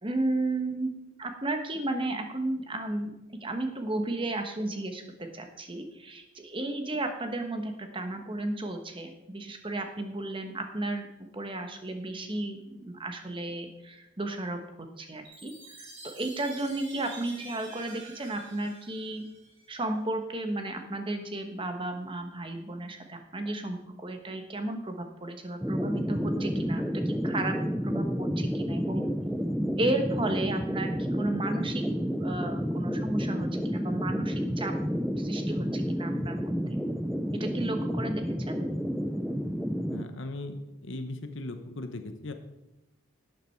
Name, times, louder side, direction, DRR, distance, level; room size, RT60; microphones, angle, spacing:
voice 1, 0.0-3.1 3.4-14.6 15.0-19.3 19.7-27.6 27.8-29.1 29.8-31.9 32.2-34.8 35.2-36.8 37.3-38.7, right 2 dB, 25° right, 6 dB, 1.1 m, -33 dB
Chime, 15.2-19.8, right 3 dB, 55° right, 3.6 m, -48 dB
sound 1, 25.6-40.0, equal, ahead, 0.4 m, -30 dB
voice 2, 39.9-42.3, left 2 dB, 60° left, 8 dB, 1.0 m, -38 dB
12.0 x 8.5 x 4.5 m, 0.93 s
head